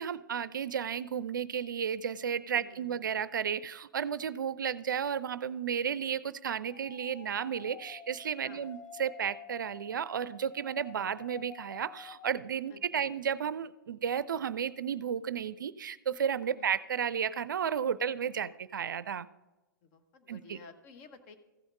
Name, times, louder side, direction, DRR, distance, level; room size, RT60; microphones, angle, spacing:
voice 1, 0.0-19.3 20.3-20.6, right 8 dB, 70° right, 17 dB, 0.4 m, -33 dB
voice 2, 2.5-3.1 8.4-8.7 12.7-13.1 16.5-16.7 19.8-21.4, left 5 dB, 40° left, 7 dB, 1.1 m, -53 dB
sound 1, 6.7-12.3, left 8 dB, 15° left, 0.6 m, -50 dB
15.0 x 5.6 x 5.3 m, 1.1 s
figure-of-eight pair, 115°, 11 cm